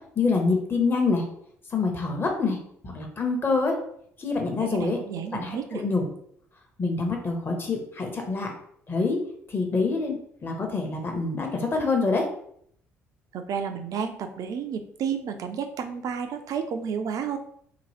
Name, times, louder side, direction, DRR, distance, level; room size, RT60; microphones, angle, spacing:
voice 1, 0.2-1.2 1.7-2.6 2.8-3.7 4.2-5.0 5.3-6.0 6.8-8.5 8.9-9.2 9.5-10.2 10.4-12.2, left 4 dB, 30° left, 2 dB, 0.9 m, -26 dB
voice 2, 4.6-5.8 13.3-17.4, right 7 dB, 50° right, 7 dB, 0.4 m, -31 dB
2.8 x 2.2 x 3.2 m, 0.66 s
figure-of-eight pair, 50°, 8 cm